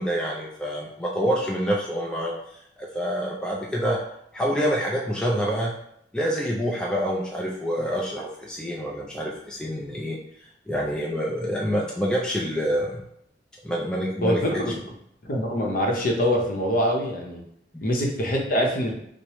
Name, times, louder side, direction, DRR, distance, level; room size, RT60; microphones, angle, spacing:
voice 1, 0.0-2.3 2.8-4.0 4.3-5.8 6.1-10.2 10.7-13.0 13.6-14.4 17.7-17.9, equal, 5° left, -3 dB, 0.4 m, -27 dB
voice 2, 14.2-14.7 15.2-17.4 17.8-18.9, equal, 50° left, 0 dB, 0.7 m, -24 dB
4.7 x 2.0 x 3.0 m, 0.72 s
head